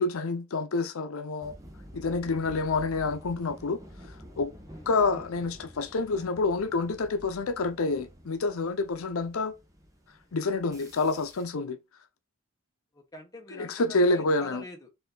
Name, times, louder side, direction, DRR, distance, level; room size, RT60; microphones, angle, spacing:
voice 1, 0.0-1.5 1.9-3.8 4.4-4.5 4.9-9.5 10.3-11.8 13.5-14.6, left 3 dB, 80° left, 0.6 m, -28 dB
sound 1, 1.4-11.4, equal, 15° right, 0.8 m, -49 dB
voice 2, 12.9-14.9, left 2 dB, 15° left, 0.9 m, -45 dB
4.5 x 2.7 x 3.8 m
head